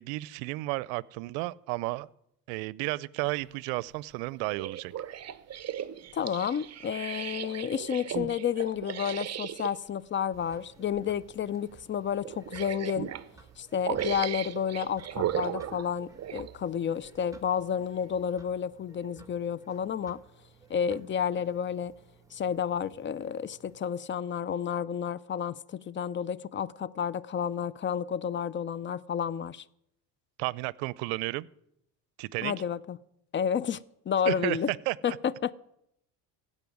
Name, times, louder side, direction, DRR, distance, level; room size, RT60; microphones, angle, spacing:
voice 1, 0.0-2.1 2.5-4.9 30.4-31.5 32.2-32.5 34.3-34.6 34.9-35.2, right 21 dB, 75° right, 0.6 m, -32 dB
sound 1, 4.4-9.7 10.8-11.0 11.4-11.5 12.2-13.3 13.8-16.5 17.2-17.3, right 11 dB, 35° right, 0.8 m, -36 dB
voice 2, 6.1-13.1 13.6-20.2 20.7-21.9 22.3-29.6 32.4-33.0 33.3-33.8 34.1-34.7 35.0-35.5, left 8 dB, 25° left, 0.4 m, -31 dB
sound 2, 10.3-23.9, right 4 dB, 5° right, 1.6 m, -56 dB
16.0 x 5.5 x 9.4 m
supercardioid pair, 80°, 47 cm